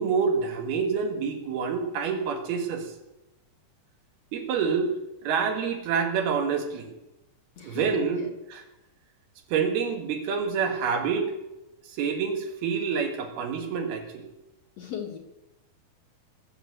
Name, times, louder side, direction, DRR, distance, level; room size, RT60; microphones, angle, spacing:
voice 1, 0.0-2.9 4.3-4.9 5.2-7.0 7.6-8.3 8.5-8.6 9.5-11.3 11.9-14.3, right 6 dB, 90° right, 4 dB, 3.7 m, -27 dB
voice 2, 7.6-8.3 14.8-15.2, left 8 dB, 50° left, 1 dB, 2.4 m, -36 dB
20.5 x 7.4 x 8.0 m, 0.96 s
omnidirectional pair, 4.3 m